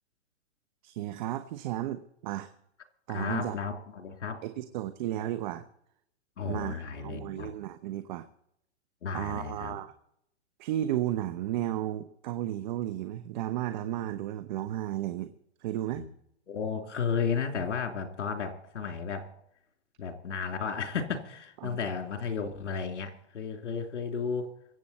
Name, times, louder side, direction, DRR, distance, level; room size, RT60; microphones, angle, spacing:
voice 1, 0.8-2.5 3.1-3.5 4.4-5.6 6.4-8.3 9.1-9.9 10.6-15.3 15.6-16.0 21.6-21.8, right 13 dB, 40° right, 9 dB, 1.0 m, -33 dB
voice 2, 3.1-4.4 6.4-7.5 9.0-9.8 15.9-16.1 16.5-19.3 20.0-24.5, left 6 dB, 75° left, 4 dB, 3.2 m, -33 dB
24.0 x 8.5 x 4.3 m, 0.74 s
hypercardioid pair, 140°, 35 cm